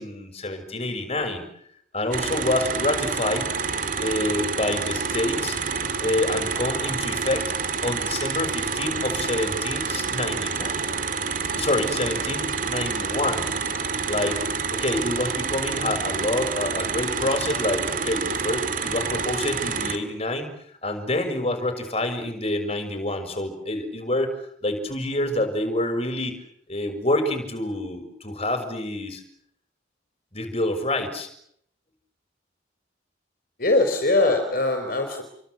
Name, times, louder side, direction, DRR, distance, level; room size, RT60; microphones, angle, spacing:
voice 1, 0.0-1.5 1.9-3.5 4.0-5.6 6.0-7.5 7.8-11.0 11.5-13.5 14.1-14.4 14.7-20.5 20.8-26.4 26.7-29.2 30.3-31.3, left 1 dB, 30° left, 7 dB, 6.2 m, -27 dB
sound 1, 2.1-20.0, right 5 dB, 45° right, 2.8 m, -28 dB
voice 2, 33.6-35.2, left 2 dB, 45° left, 5 dB, 4.5 m, -21 dB
28.5 x 24.0 x 8.0 m, 0.70 s
head